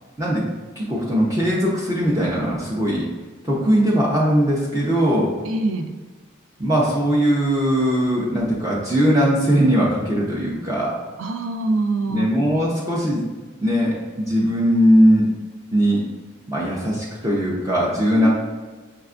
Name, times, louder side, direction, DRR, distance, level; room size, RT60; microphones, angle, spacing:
voice 1, 0.8-3.1 3.4-5.3 6.6-11.0 12.1-13.2 13.6-15.3 15.7-16.1 16.5-18.3, equal, 15° right, -5 dB, 0.4 m, -19 dB
voice 2, 5.4-5.9 11.2-12.3 18.1-18.3, right 2 dB, 80° right, 6 dB, 0.4 m, -24 dB
5.6 x 2.2 x 2.4 m, 1.3 s
head